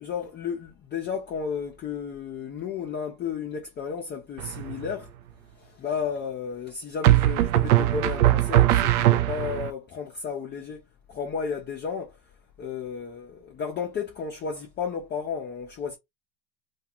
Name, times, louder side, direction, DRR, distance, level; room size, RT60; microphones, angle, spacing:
voice 1, 0.0-5.1 5.5-12.3 12.6-16.0, left 6 dB, 25° left, 0.5 m, -33 dB
sound 1, 4.4-4.9 7.0-9.7, right 14 dB, 70° right, 0.5 m, -20 dB
2.4 x 2.3 x 2.8 m
hypercardioid pair, 85°, 46 cm